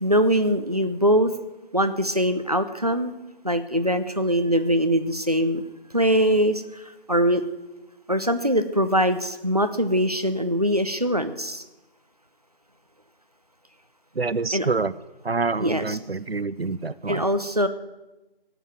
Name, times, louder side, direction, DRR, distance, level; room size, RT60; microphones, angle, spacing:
voice 1, 0.0-1.3 1.7-3.1 3.4-5.6 5.9-7.4 8.1-11.6 14.5-14.7 15.6-16.0 17.1-17.7, equal, 40° right, 9 dB, 0.9 m, -22 dB
voice 2, 14.2-14.9 15.2-17.2, right 4 dB, 90° right, 15 dB, 0.8 m, -26 dB
18.0 x 8.1 x 9.4 m, 1.0 s
figure-of-eight pair, 180°, 30 cm